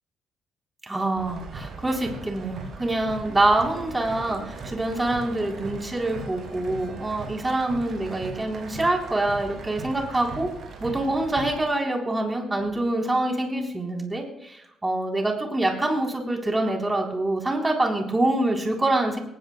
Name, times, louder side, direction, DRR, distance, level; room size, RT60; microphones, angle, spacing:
voice 1, 0.9-10.5 10.8-19.2, right 2 dB, 15° right, 1 dB, 3.5 m, -25 dB
sound 1, 1.2-11.6, right 3 dB, 60° right, 5.6 m, -39 dB
20.5 x 18.5 x 2.2 m, 0.79 s
cardioid pair, 110°, 0 cm